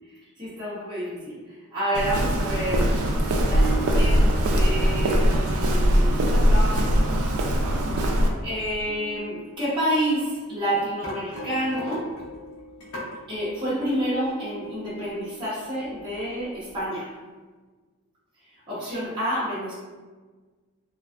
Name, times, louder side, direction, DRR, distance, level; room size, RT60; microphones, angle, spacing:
voice 1, 0.4-3.1 3.4-7.4 8.4-12.1 13.3-17.1 18.7-19.7, equal, 20° right, -12 dB, 0.8 m, -29 dB
Walk footsteps, 1.9-8.3, equal, 75° right, 0.3 m, -21 dB
sound 1, 3.5-10.6 11.3-13.9 14.2-16.8, right 3 dB, 45° left, 1.1 m, -41 dB
sound 2, 9.4-10.3 10.7-13.2, left 1 dB, 70° left, 0.6 m, -39 dB
2.4 x 2.3 x 2.3 m, 1.4 s
head